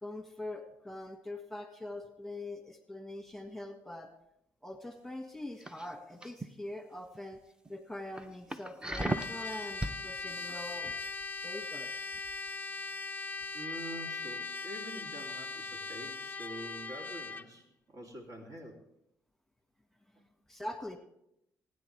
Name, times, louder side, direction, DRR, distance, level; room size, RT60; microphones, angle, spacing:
voice 1, 0.0-4.1 4.6-7.4 7.7-10.9 11.4-12.1 20.5-21.0, left 1 dB, 5° left, 5 dB, 1.8 m, -43 dB
sound 1, 5.6-6.5 6.9-7.2 7.6-7.7 8.2-10.0 10.4-10.5, right 1 dB, 10° right, 0.8 m, -36 dB
Trumpet, 8.9-17.5, left 3 dB, 25° left, 0.5 m, -40 dB
voice 2, 13.5-18.8 20.1-20.2, right 1 dB, 60° right, 1 dB, 3.2 m, -46 dB
24.0 x 9.5 x 3.5 m, 0.81 s
cardioid pair, 75°, 7 cm